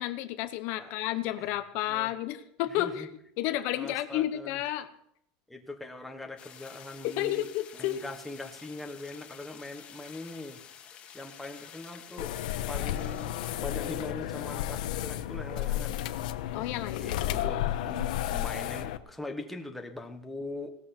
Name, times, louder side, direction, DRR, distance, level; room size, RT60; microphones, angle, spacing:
voice 1, 0.0-4.9 7.0-8.0 16.5-17.5, left 14 dB, 50° left, 10 dB, 0.9 m, -32 dB
voice 2, 2.7-3.1 3.7-4.6 5.5-7.5 7.7-10.6 11.1-12.4 12.7-16.0 17.0-20.8, left 2 dB, 5° left, 3 dB, 1.2 m, -41 dB
sound 1, 6.4-13.6, left 8 dB, 30° left, 1.7 m, -50 dB
sound 2, 12.2-19.0, left 13 dB, 85° left, 1.0 m, -32 dB
17.5 x 13.5 x 4.3 m, 0.71 s
supercardioid pair, 165°, 4 cm